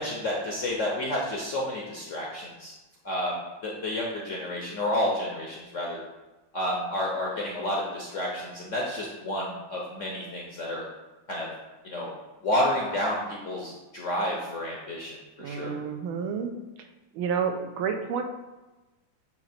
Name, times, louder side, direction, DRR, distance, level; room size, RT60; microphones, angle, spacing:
voice 1, 0.0-2.7 3.0-6.0 6.5-10.8 11.3-11.5 11.8-12.1 12.4-15.7, left 1 dB, 60° left, -2 dB, 0.8 m, -30 dB
voice 2, 15.4-16.5 16.8-16.9 17.1-18.2, right 6 dB, 90° right, 5 dB, 1.5 m, -30 dB
8.0 x 2.9 x 4.4 m, 1.1 s
omnidirectional pair, 2.2 m